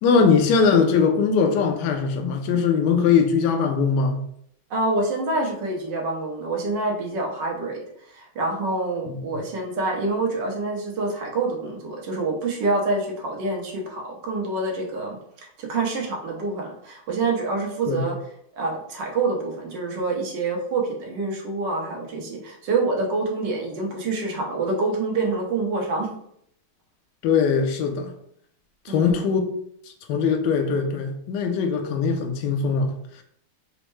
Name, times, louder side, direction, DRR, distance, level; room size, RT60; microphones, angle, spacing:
voice 1, 0.0-4.2 9.1-9.2 17.9-18.1 27.2-28.1 28.9-29.4 30.1-32.9, left 5 dB, 80° left, 3 dB, 1.0 m, -21 dB
voice 2, 4.7-7.8 8.1-15.2 15.6-18.2 18.6-26.1 28.9-29.2, right 3 dB, 65° right, 0 dB, 1.3 m, -26 dB
4.3 x 2.0 x 3.1 m, 0.69 s
omnidirectional pair, 2.4 m